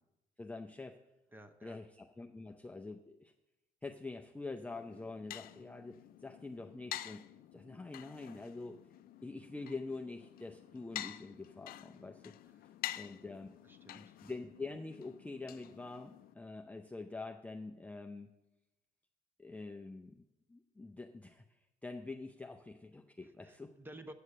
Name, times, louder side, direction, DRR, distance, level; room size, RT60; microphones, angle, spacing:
voice 1, 0.4-1.0 1.6-3.3 3.8-7.2 7.5-8.8 9.2-12.4 13.0-13.6 13.9-18.3 19.4-20.2 20.5-23.7, left 3 dB, 10° left, 3 dB, 0.5 m, -46 dB
voice 2, 1.3-1.8 12.4-12.6 13.6-14.2 23.2-24.1, right 1 dB, 10° right, 8 dB, 0.8 m, -53 dB
sound 1, 4.7-16.3, left 13 dB, 60° left, 0.4 m, -49 dB
8.6 x 6.5 x 6.6 m, 0.94 s
cardioid pair, 110°, 17 cm